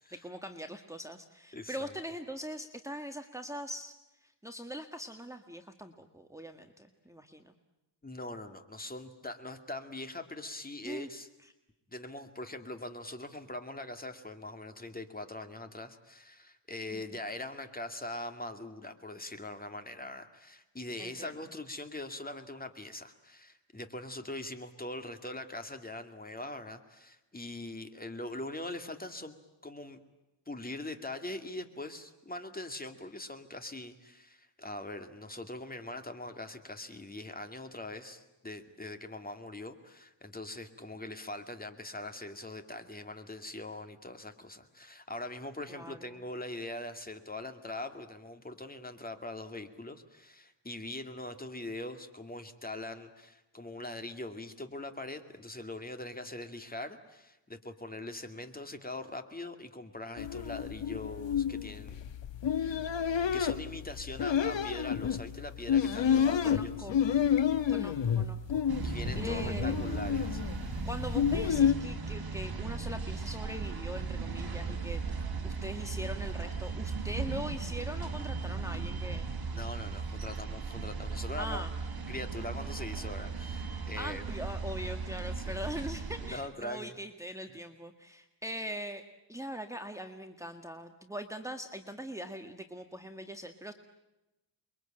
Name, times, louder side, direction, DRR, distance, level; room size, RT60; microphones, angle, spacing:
voice 1, 0.1-7.5 10.8-11.1 16.9-17.2 21.0-21.3 45.7-46.2 66.0-67.0 67.7-69.7 70.9-79.3 81.4-81.7 83.7-89.0 89.3-93.7, equal, 5° right, 6 dB, 1.7 m, -42 dB
voice 2, 1.5-1.9 8.0-11.3 11.9-29.4 29.6-30.0 30.5-62.0 62.6-62.8 63.3-66.9 68.8-70.5 79.5-81.7 82.1-84.2 85.4-85.5 86.2-86.9, left 1 dB, 20° left, 7 dB, 2.4 m, -42 dB
sound 1, 60.2-71.7, left 8 dB, 70° left, 1.4 m, -30 dB
sound 2, 68.7-86.4, right 4 dB, 55° right, 4.3 m, -37 dB
29.0 x 23.0 x 9.0 m, 0.99 s
wide cardioid pair, 125°, 45 cm